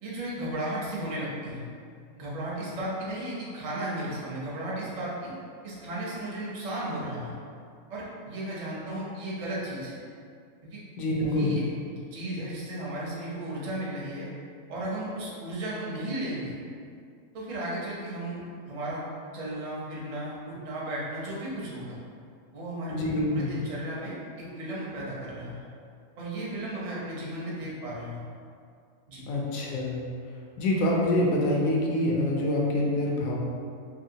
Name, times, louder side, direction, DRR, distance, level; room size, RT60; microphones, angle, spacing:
voice 1, 0.0-1.6 2.2-5.3 5.6-7.3 7.9-9.9 10.7-10.8 11.2-11.6 12.1-14.3 14.7-16.5 17.3-19.0 19.3-22.0 22.5-25.7 26.2-28.2 29.1-29.2, right 1 dB, 45° right, -6 dB, 0.5 m, -35 dB
voice 2, 11.0-11.5 22.9-23.5 29.3-30.0 30.6-33.4, left 1 dB, 75° left, -2 dB, 1.0 m, -26 dB
2.8 x 2.7 x 2.7 m, 2.3 s
omnidirectional pair, 1.5 m